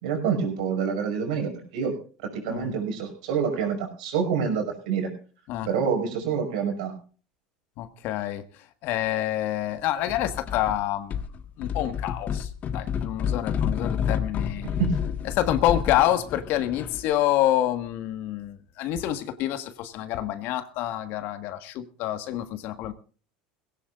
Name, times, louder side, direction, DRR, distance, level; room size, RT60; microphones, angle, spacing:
voice 1, 0.0-1.9 2.2-5.1 5.7-6.9 14.8-15.0, right 6 dB, 75° right, 4 dB, 5.7 m, -27 dB
voice 2, 7.8-11.2 11.6-14.7 15.3-22.9, left 13 dB, 60° left, 10 dB, 1.5 m, -27 dB
sound 1, 10.1-10.8 11.1-17.1, left 7 dB, 45° left, 1.5 m, -30 dB
21.0 x 16.5 x 2.4 m, 0.38 s
hypercardioid pair, 85°, 4 cm